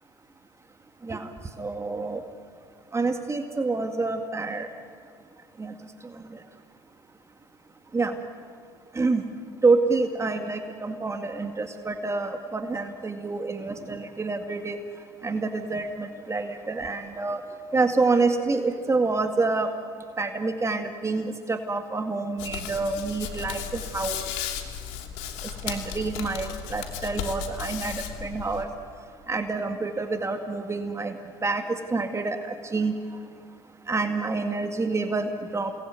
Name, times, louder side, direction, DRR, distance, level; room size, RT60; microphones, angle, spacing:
voice 1, 1.6-2.2 2.9-4.7 5.6-5.7 7.9-8.2 8.9-9.2 9.6-14.8 15.2-17.5 17.7-19.7 20.2-23.6 23.9-24.2 25.6-28.7 29.3-31.2 31.4-31.6 31.9-32.9 33.9-35.7, right 3 dB, 25° right, 6 dB, 2.1 m, -27 dB
Hands, 22.4-28.6, left 8 dB, 75° left, 2.8 m, -35 dB
29.0 x 20.5 x 9.4 m, 2.3 s
hypercardioid pair, 75°, 12 cm